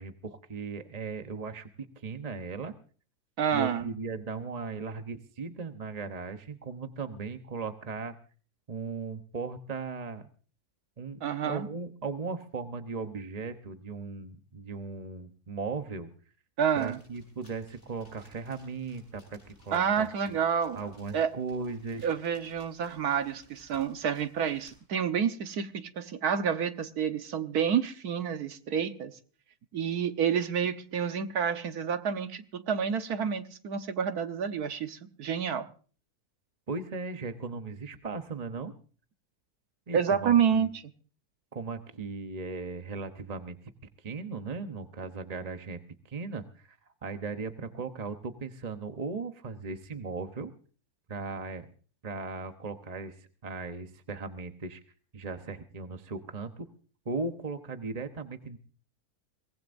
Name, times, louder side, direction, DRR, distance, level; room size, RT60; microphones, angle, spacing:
voice 1, 0.0-1.7 2.0-2.7 3.5-8.1 8.7-10.2 11.0-16.1 16.8-20.4 20.7-22.1 36.7-38.7 39.9-40.7 41.5-43.6 44.0-45.8 46.1-46.8 47.0-50.5 51.1-51.7 52.0-54.8 55.1-56.7 57.0-58.6, right 4 dB, 30° right, 0.9 m, -37 dB
voice 2, 3.4-3.9 11.2-11.7 16.6-17.0 19.7-20.8 21.1-21.3 22.0-29.1 29.7-35.7 39.9-40.8, right 7 dB, 80° right, 1.6 m, -29 dB
sound 1, 16.6-24.8, left 1 dB, 50° left, 8.1 m, -60 dB
23.0 x 19.0 x 2.6 m
omnidirectional pair, 1.6 m